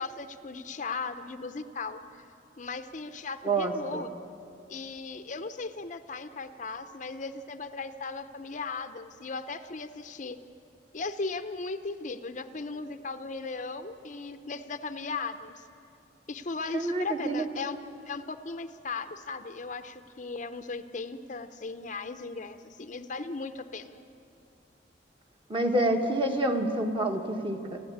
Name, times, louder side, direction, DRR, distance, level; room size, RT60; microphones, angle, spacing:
voice 1, 0.0-2.2 2.6-4.1 4.7-10.4 10.9-15.6 16.3-17.8 18.1-24.0, left 4 dB, 45° left, 9 dB, 0.7 m, -37 dB
voice 2, 3.4-4.1 16.7-17.5 25.5-27.8, right 1 dB, 30° right, 3 dB, 1.5 m, -28 dB
30.0 x 10.5 x 8.6 m, 2.8 s
head